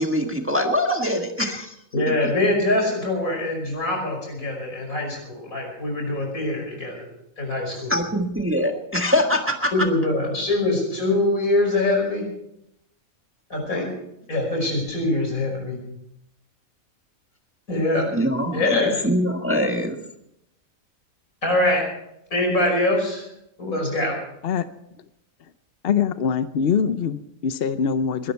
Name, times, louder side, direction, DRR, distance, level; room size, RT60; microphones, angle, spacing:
voice 1, 0.0-1.7 7.9-9.7 18.1-20.0, equal, 10° right, 3 dB, 1.5 m, -23 dB
voice 2, 1.9-7.1 7.4-8.0 9.7-12.3 13.5-13.9 14.3-15.8 17.7-18.0 18.5-19.0 21.4-21.8 22.3-23.3 23.6-24.2, left 2 dB, 85° left, 1 dB, 6.0 m, -23 dB
voice 3, 25.8-28.3, left 7 dB, 55° left, 12 dB, 0.8 m, -23 dB
21.5 x 12.5 x 4.6 m, 0.80 s
omnidirectional pair, 1.4 m